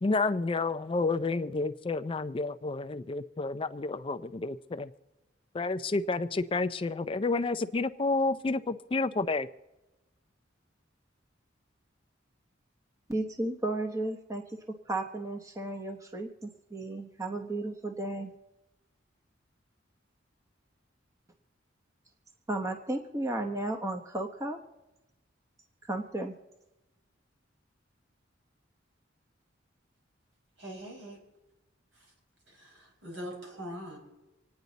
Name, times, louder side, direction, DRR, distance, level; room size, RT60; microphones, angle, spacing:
voice 1, 0.0-4.9 5.5-9.5, left 3 dB, 30° left, 12 dB, 0.4 m, -30 dB
voice 2, 13.1-14.6 14.9-18.3 22.5-24.6 25.8-26.3, right 2 dB, 15° right, 3 dB, 0.9 m, -34 dB
voice 3, 30.6-31.2 32.5-34.0, equal, 75° right, 0 dB, 5.2 m, -42 dB
26.5 x 9.5 x 4.0 m, 1.0 s
head